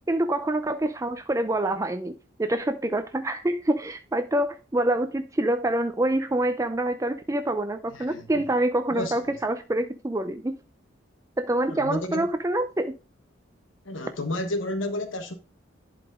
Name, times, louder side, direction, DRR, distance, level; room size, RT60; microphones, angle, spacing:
voice 1, 0.1-10.5 11.4-12.9, right 1 dB, 15° right, 0.5 m, -26 dB
voice 2, 7.9-8.4 8.9-9.2 11.6-12.3 13.8-15.3, left 1 dB, 90° left, 1.2 m, -31 dB
11.5 x 4.9 x 3.6 m
head